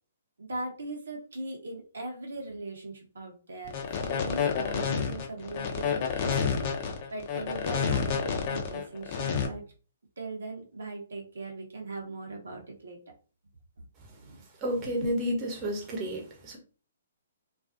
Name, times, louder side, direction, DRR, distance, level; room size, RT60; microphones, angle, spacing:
voice 1, 0.4-9.6 10.2-13.0 14.1-14.4 14.8-15.1, right 2 dB, 75° right, 0.8 m, -40 dB
sound 1, 3.6-9.5, left 6 dB, 40° left, 0.6 m, -29 dB
voice 2, 14.6-16.6, equal, 25° right, 0.9 m, -31 dB
2.4 x 2.4 x 2.4 m
hypercardioid pair, 135°, 0 cm